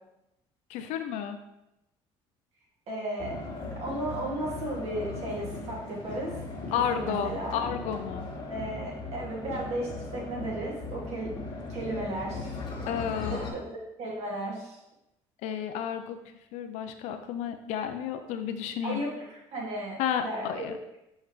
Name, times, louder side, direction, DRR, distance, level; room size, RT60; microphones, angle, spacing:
voice 1, 0.7-1.4 6.7-8.3 12.9-13.4 15.4-16.2 16.5-19.0 20.0-20.7, left 8 dB, 75° left, 7 dB, 0.5 m, -31 dB
voice 2, 2.9-3.4 3.8-6.4 6.9-7.6 8.5-11.3 11.7-12.6 13.3-13.6 14.0-14.8 18.8-20.7, right 1 dB, 65° right, -4 dB, 2.2 m, -34 dB
sound 1, 3.2-13.5, left 3 dB, 40° left, 1.7 m, -38 dB
5.7 x 5.3 x 3.1 m, 0.89 s
cardioid pair, 95°, 12 cm